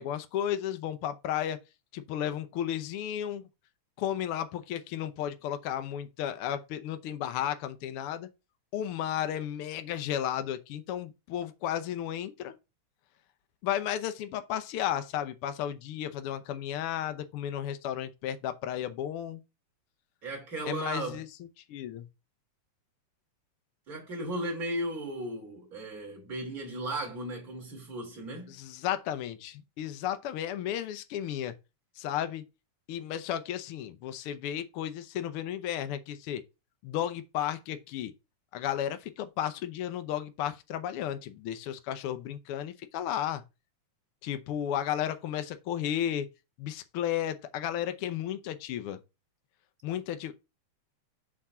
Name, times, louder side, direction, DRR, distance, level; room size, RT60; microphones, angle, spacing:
voice 1, 0.0-1.6 1.9-3.5 4.0-8.3 8.7-12.5 13.6-19.4 20.7-21.3 21.7-22.1 28.5-31.5 32.0-32.4 32.9-36.4 36.8-38.1 38.5-43.4 44.2-46.3 46.6-49.0 49.8-50.3, left 10 dB, 85° left, 1.2 m, -33 dB
voice 2, 20.2-21.2 23.9-28.5, right 1 dB, 30° right, 2.9 m, -36 dB
7.1 x 3.7 x 5.6 m
omnidirectional pair, 3.4 m